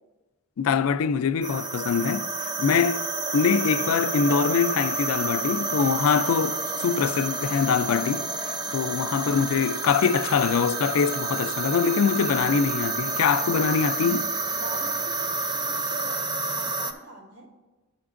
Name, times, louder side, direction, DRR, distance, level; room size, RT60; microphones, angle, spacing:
voice 1, 0.6-3.1 3.3-14.3, left 6 dB, 80° left, 0.4 m, -24 dB
sound 1, 1.4-16.9, right 3 dB, 20° right, 0.4 m, -29 dB
voice 2, 8.6-9.1 14.4-17.5, right 2 dB, 60° right, 1.4 m, -44 dB
12.5 x 5.9 x 2.5 m
head